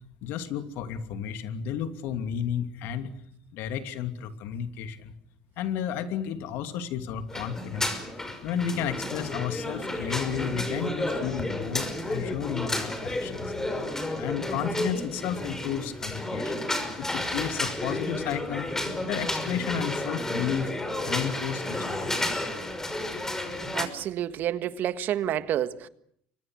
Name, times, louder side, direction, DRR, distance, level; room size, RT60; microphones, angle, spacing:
voice 1, 0.2-3.1 3.5-5.1 5.6-8.0 8.4-13.5 14.1-16.5 17.0-18.7 19.1-20.7 21.0-22.1, left 8 dB, 70° left, 2.7 m, -32 dB
sound 1, 7.3-23.8, left 1 dB, 10° left, 5.9 m, -32 dB
voice 2, 23.7-25.9, right 11 dB, 60° right, 1.6 m, -29 dB
29.5 x 24.5 x 6.4 m
supercardioid pair, 80°, 4 cm